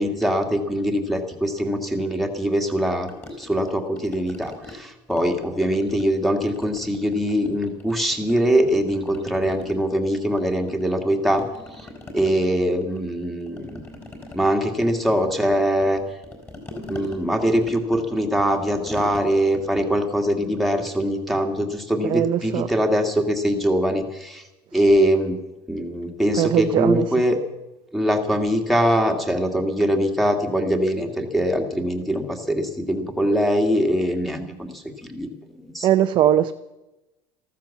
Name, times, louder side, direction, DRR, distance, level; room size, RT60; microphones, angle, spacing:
voice 1, 0.0-3.1 3.4-11.4 11.7-13.8 14.3-16.0 16.9-24.4 24.7-25.3 25.7-27.4 27.9-35.3 35.6-35.9, equal, ahead, 4 dB, 1.9 m, -22 dB
sound 1, 3.1-4.8 5.1-6.2 6.5-8.3 8.6-11.0 11.3-21.2, left 2 dB, 20° left, 4.6 m, -42 dB
voice 2, 22.1-22.7 26.4-27.0 35.8-36.5, right 11 dB, 45° right, 7 dB, 0.6 m, -20 dB
14.5 x 13.5 x 7.2 m, 1.0 s
cardioid pair, 150°, 11 cm